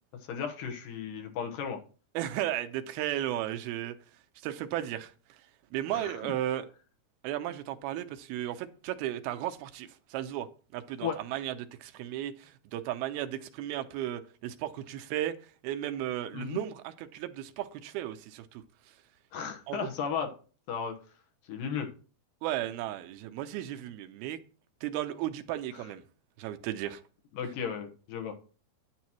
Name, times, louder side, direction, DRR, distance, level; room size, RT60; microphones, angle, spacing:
voice 1, 0.3-1.8 5.9-6.3 11.0-11.2 16.3-16.6 19.3-20.3 20.7-21.0 21.5-21.9 27.4-28.3, left 7 dB, 70° left, 2.7 m, -34 dB
voice 2, 2.1-4.0 4.4-5.4 5.7-6.7 7.2-18.6 19.7-19.9 22.4-24.4 24.8-26.0 26.4-27.0, right 12 dB, 85° right, 2.6 m, -35 dB
9.6 x 9.2 x 3.0 m
omnidirectional pair, 4.4 m